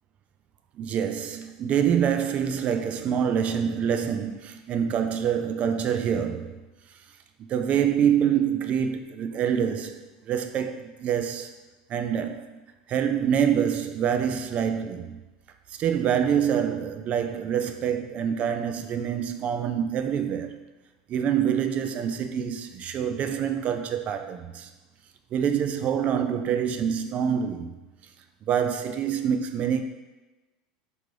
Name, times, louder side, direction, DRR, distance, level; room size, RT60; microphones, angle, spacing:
voice 1, 0.8-6.6 7.4-11.6 11.9-12.5 12.9-15.2 15.7-20.6 21.1-24.7 25.3-27.7 28.4-29.8, right 8 dB, 40° right, 0.3 m, -26 dB
4.5 x 2.6 x 3.2 m
supercardioid pair, 115°, 4 cm